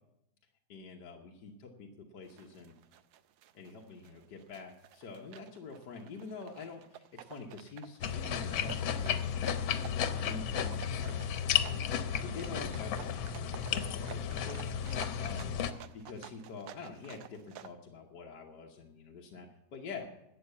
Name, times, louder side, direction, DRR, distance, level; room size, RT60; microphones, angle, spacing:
voice 1, 0.7-2.7 3.5-11.2 11.4-11.9 12.2-13.2 13.7-14.6 15.2-15.6 15.9-20.1, left 4 dB, 60° left, 0 dB, 1.7 m, -46 dB
sound 1, 2.2-17.7, right 11 dB, 80° right, 1.4 m, -51 dB
sound 2, 8.0-15.7, left 8 dB, 85° left, 1.6 m, -33 dB
12.5 x 8.1 x 8.2 m, 0.86 s
omnidirectional pair, 2.1 m